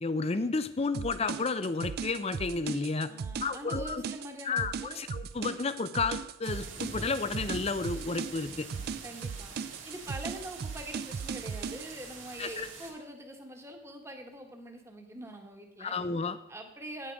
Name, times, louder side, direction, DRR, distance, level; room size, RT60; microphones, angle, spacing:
voice 1, 0.0-3.1 3.4-4.0 4.4-8.7 12.4-12.7 15.8-16.4, left 4 dB, 30° left, 13 dB, 0.5 m, -32 dB
sound 1, 0.9-11.9, right 6 dB, 50° right, 0.3 m, -38 dB
voice 2, 3.1-5.0 9.0-9.5 9.8-16.0 16.5-17.1, right 1 dB, 15° right, 3 dB, 1.2 m, -44 dB
sound 2, 6.4-12.9, right 3 dB, 85° right, 2.3 m, -45 dB
9.1 x 8.0 x 5.2 m, 0.86 s
head